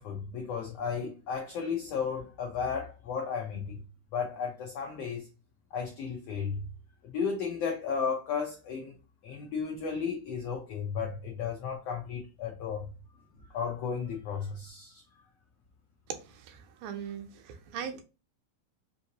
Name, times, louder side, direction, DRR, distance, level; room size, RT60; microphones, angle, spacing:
voice 1, 0.0-3.8 4.1-5.3 5.7-6.6 7.0-8.9 9.2-12.9 13.5-15.0, left 6 dB, 85° left, 1.4 m, -34 dB
voice 2, 16.4-18.0, right 8 dB, 85° right, 2.5 m, -40 dB
5.4 x 2.6 x 2.8 m
omnidirectional pair, 3.9 m